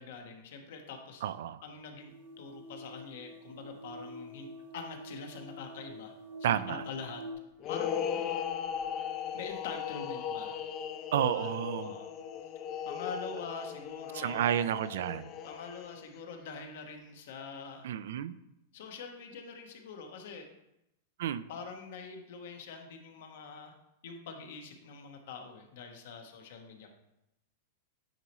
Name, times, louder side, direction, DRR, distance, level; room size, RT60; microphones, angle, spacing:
voice 1, 0.0-1.2 1.6-4.5 4.7-6.1 6.4-7.2 7.7-8.7 9.3-10.6 11.2-11.5 11.8-12.1 12.9-14.6 15.4-17.9 18.7-20.5 21.5-23.7 24.0-26.9, left 5 dB, 65° left, 4 dB, 1.0 m, -44 dB
voice 2, 1.2-1.6 6.4-6.8 11.1-11.9 14.1-15.3 17.8-18.3 21.2-21.4, right 10 dB, 75° right, 15 dB, 0.3 m, -31 dB
sound 1, 2.1-7.3, equal, 90° right, 1.8 m, -47 dB
sound 2, 7.6-16.2, left 8 dB, 30° left, 0.4 m, -37 dB
8.9 x 4.1 x 3.1 m, 0.85 s
supercardioid pair, 155°, 0 cm